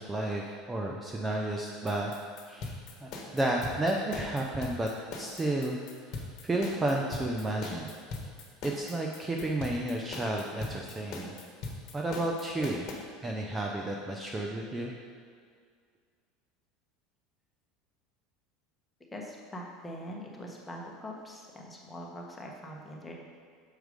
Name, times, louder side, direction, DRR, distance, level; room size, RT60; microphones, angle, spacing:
voice 1, 0.0-2.1 2.5-4.9 5.2-5.8 6.0-7.9 8.6-11.3 11.9-12.8 13.2-14.9, right 1 dB, 15° right, 0 dB, 0.6 m, -32 dB
sound 1, 1.7-12.9, left 3 dB, 50° left, 1.3 m, -40 dB
voice 2, 19.1-23.1, equal, 10° left, -1 dB, 1.3 m, -43 dB
6.6 x 4.6 x 5.2 m, 2.1 s
supercardioid pair, 110°, 0 cm